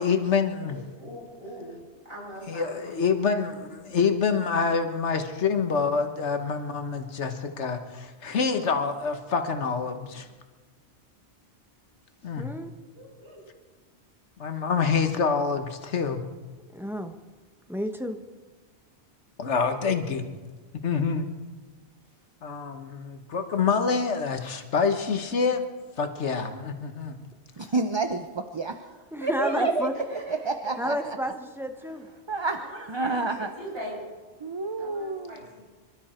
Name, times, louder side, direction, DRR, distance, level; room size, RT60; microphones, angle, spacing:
voice 1, 0.0-0.8 2.5-10.3 12.2-12.5 14.4-16.3 19.4-20.3 20.8-21.3 22.4-25.6 26.0-27.1, left 5 dB, 80° left, 7 dB, 1.5 m, -26 dB
voice 2, 0.6-1.7 2.1-3.0 10.1-10.2 12.9-13.4 29.3-29.6 30.1-30.5 30.8-31.1 32.6-34.0 34.8-35.4, equal, 55° right, -5 dB, 6.5 m, -40 dB
voice 3, 12.4-12.7 16.7-17.1 17.7-18.2 29.1-29.9 30.8-32.1, equal, ahead, 6 dB, 0.9 m, -31 dB
voice 4, 27.6-28.9 29.2-31.2 32.3-33.5 34.4-35.4, right 3 dB, 30° right, 7 dB, 0.6 m, -29 dB
26.0 x 12.5 x 4.4 m, 1.3 s
omnidirectional pair, 1.2 m